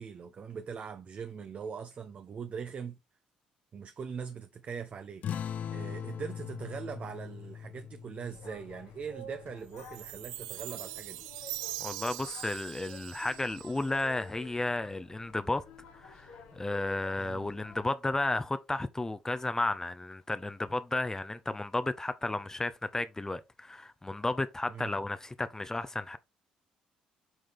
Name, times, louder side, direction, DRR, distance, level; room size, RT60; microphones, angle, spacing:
voice 1, 0.0-3.0 3.7-5.2 5.7-11.2 17.2-17.5 24.7-25.0, right 6 dB, 45° right, 0.7 m, -41 dB
sound 1, 5.2-10.2, left 8 dB, 55° left, 0.5 m, -41 dB
sound 2, 8.3-17.9, left 2 dB, 75° left, 1.6 m, -52 dB
Chime, 9.8-14.2, right 17 dB, 85° right, 0.3 m, -42 dB
voice 2, 11.8-15.6 15.9-26.2, left 2 dB, 15° left, 0.7 m, -33 dB
8.0 x 3.8 x 3.6 m
hypercardioid pair, 55°, 3 cm